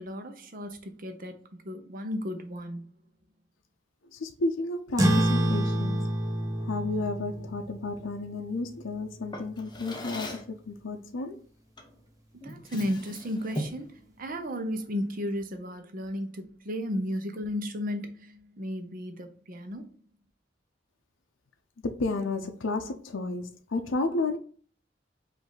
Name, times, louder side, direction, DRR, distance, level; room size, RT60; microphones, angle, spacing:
voice 1, 0.0-1.4 1.6-2.8 12.4-19.9, equal, 50° right, 0.8 m, -34 dB
voice 2, 4.1-6.1 6.6-11.4 21.8-24.4, left 3 dB, 90° left, 0.6 m, -32 dB
sound 1, 5.0-9.8, right 1 dB, 20° right, 0.7 m, -29 dB
Drawer open or close, 9.3-10.6 11.8-12.0 12.4-13.9, equal, 25° left, 0.7 m, -38 dB
5.1 x 2.7 x 3.9 m
head